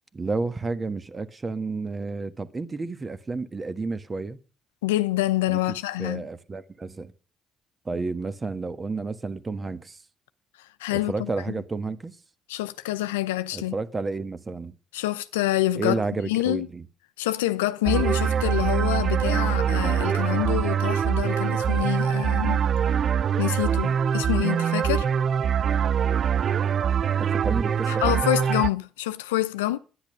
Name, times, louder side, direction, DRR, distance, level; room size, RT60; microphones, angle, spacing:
voice 1, 0.1-4.4 5.5-5.6 6.0-7.1 7.8-10.0 10.9-12.2 13.5-14.7 15.8-16.8 27.2-28.2, right 3 dB, 30° right, 1.4 m, -31 dB
voice 2, 4.8-6.3 10.6-11.3 12.5-13.7 14.9-16.7 17.2-22.7 23.4-25.1 27.9-29.8, left 15 dB, 85° left, 0.6 m, -27 dB
sound 1, 17.9-28.7, right 8 dB, 55° right, 0.5 m, -23 dB
10.5 x 10.0 x 6.4 m
hypercardioid pair, 50°, 0 cm